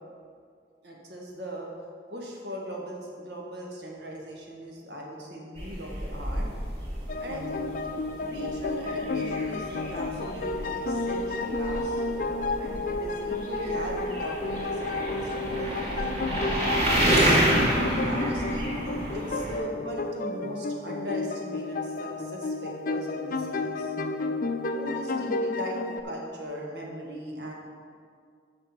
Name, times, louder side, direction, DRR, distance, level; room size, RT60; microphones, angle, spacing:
voice 1, 0.8-1.7 2.1-6.5 7.2-7.7 8.2-16.3 16.8-17.3 18.1-18.7 19.1-23.9 24.7-25.8 26.0-27.5, equal, 75° right, -1 dB, 1.7 m, -39 dB
sound 1, 5.6-19.6, right 1 dB, 35° right, 2.5 m, -29 dB
sound 2, 7.1-26.0, left 3 dB, 50° left, 0.5 m, -31 dB
6.6 x 6.1 x 7.3 m, 2.2 s
head